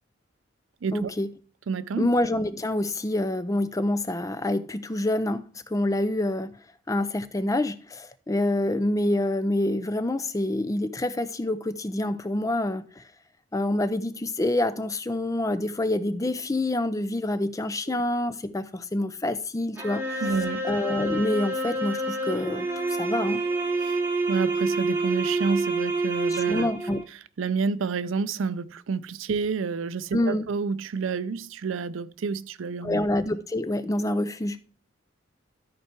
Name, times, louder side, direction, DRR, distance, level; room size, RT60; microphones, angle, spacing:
voice 1, 0.9-1.3 2.0-6.6 6.9-13.0 13.5-20.2 20.6-23.4 26.3-27.0 30.1-30.5 32.8-34.6, left 1 dB, 15° left, 0.5 m, -27 dB
voice 2, 1.7-2.1 17.9-18.0 20.2-20.7 23.8-24.0 24.3-26.7 27.4-33.0, right 5 dB, 80° right, 0.5 m, -29 dB
sound 1, 19.8-27.0, right 2 dB, 10° right, 1.2 m, -28 dB
13.0 x 4.6 x 4.5 m
head